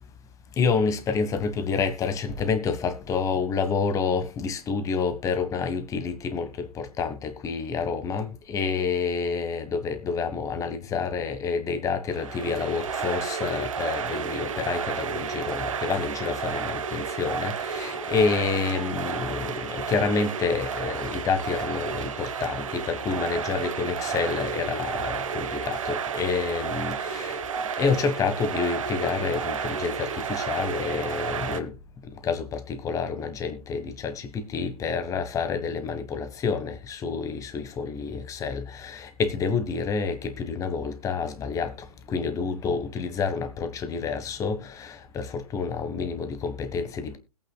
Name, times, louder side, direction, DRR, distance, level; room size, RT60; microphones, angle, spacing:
voice 1, 0.6-27.4 27.8-31.7 32.2-41.7 42.1-47.2, left 5 dB, 15° left, 1.3 m, -28 dB
sound 1, 12.1-31.6, right 6 dB, 60° right, 1.2 m, -31 dB
20.0 x 9.0 x 2.3 m
figure-of-eight pair, 115°, 19 cm